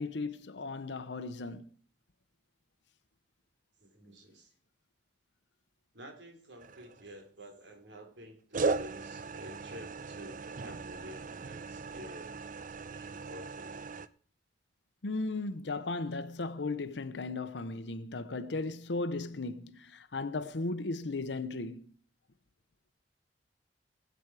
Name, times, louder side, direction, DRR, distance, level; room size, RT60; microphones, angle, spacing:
voice 1, 0.0-1.7 15.0-21.9, left 3 dB, 85° left, 0.9 m, -36 dB
voice 2, 3.8-4.5 5.9-12.3 12.9-13.9, equal, 85° right, 3.3 m, -50 dB
sound 1, 6.6-7.3 8.5-14.1, right 3 dB, 50° right, 0.6 m, -37 dB
19.5 x 8.1 x 4.8 m
head